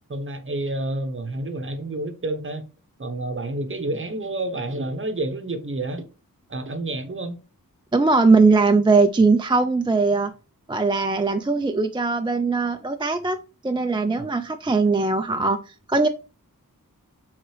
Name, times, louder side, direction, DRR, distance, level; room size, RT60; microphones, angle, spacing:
voice 1, 0.1-2.7 3.0-6.1 6.5-7.4 14.2-14.3, right 2 dB, 35° right, 0.8 m, -29 dB
voice 2, 7.9-10.3 10.7-13.4 13.6-16.1, right 3 dB, 15° right, 0.3 m, -20 dB
4.6 x 3.7 x 3.1 m
wide cardioid pair, 65°, 35 cm